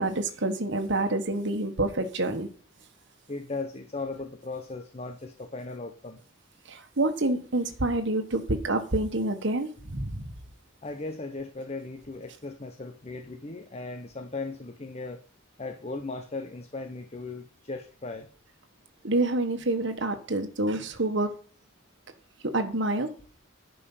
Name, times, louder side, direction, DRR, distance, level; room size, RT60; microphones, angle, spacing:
voice 1, 0.0-2.5 6.7-10.3 19.0-21.3 22.5-23.1, right 2 dB, 60° right, 1.4 m, -27 dB
voice 2, 3.3-6.2 10.8-15.2 15.6-18.3, left 3 dB, 30° left, 0.8 m, -37 dB
10.5 x 5.5 x 7.2 m
head